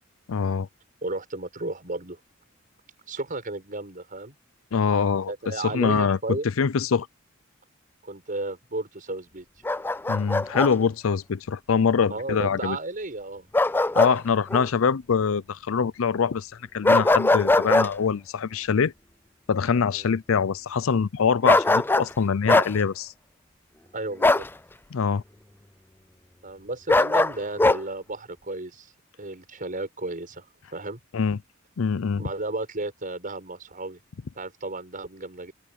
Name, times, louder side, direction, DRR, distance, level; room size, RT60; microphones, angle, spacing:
voice 1, 0.3-0.7 4.7-5.3 5.6-7.1 10.1-12.8 14.0-18.9 19.5-23.1 24.9-25.2 31.1-31.4 31.8-32.3, left 6 dB, 80° left, 0.5 m, -24 dB
voice 2, 1.0-2.2 3.1-4.3 5.3-6.5 8.0-9.4 12.1-13.5 19.9-20.1 23.9-24.5 26.4-28.9 29.2-30.5 30.7-31.0 32.2-34.0 34.4-35.5, right 2 dB, 45° right, 6.3 m, -33 dB
Bark, 9.7-10.7 13.5-14.2 14.5-14.7 16.8-17.9 21.5-22.1 22.5-22.7 24.2-24.5 26.9-27.8, left 2 dB, 10° left, 0.4 m, -20 dB
open air
head